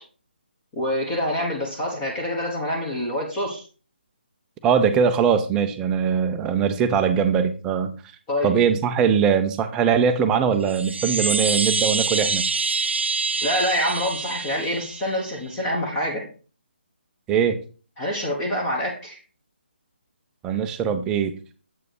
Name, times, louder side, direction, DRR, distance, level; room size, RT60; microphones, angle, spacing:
voice 1, 0.8-3.7 8.3-8.5 13.4-16.2 18.0-19.2, left 1 dB, 15° left, -1 dB, 1.3 m, -26 dB
voice 2, 4.6-8.0 8.4-12.5 17.3-17.6 20.4-21.3, right 7 dB, 10° right, 8 dB, 0.5 m, -21 dB
Chime, 10.6-15.3, right 4 dB, 90° right, 0.4 m, -26 dB
7.9 x 4.8 x 4.7 m, 0.37 s
hypercardioid pair, 160°, 6 cm